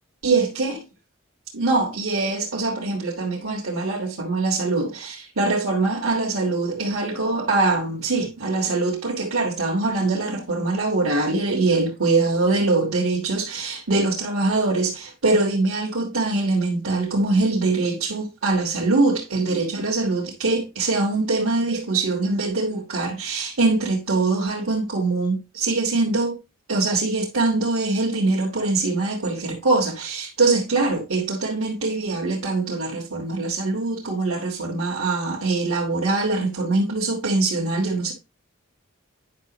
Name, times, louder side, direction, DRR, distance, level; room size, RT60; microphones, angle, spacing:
voice 1, 0.2-0.8 1.5-26.4 26.7-38.1, right 3 dB, 90° right, 1.6 m, -23 dB
9.5 x 5.9 x 3.0 m
head